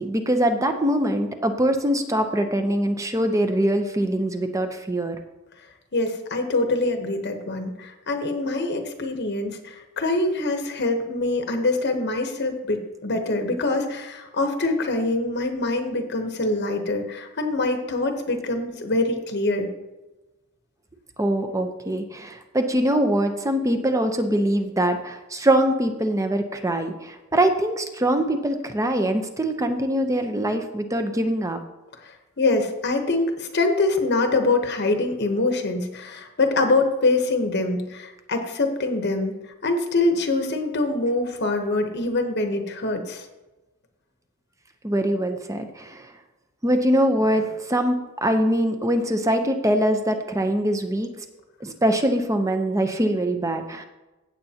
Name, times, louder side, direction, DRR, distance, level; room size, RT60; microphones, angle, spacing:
voice 1, 0.0-5.2 21.2-31.6 44.8-46.1 46.6-51.1 51.6-53.9, right 1 dB, 15° right, 6 dB, 0.7 m, -23 dB
voice 2, 5.9-19.7 32.0-39.3 39.6-43.2, left 2 dB, 50° left, 5 dB, 0.9 m, -24 dB
16.0 x 7.7 x 2.8 m, 1.1 s
head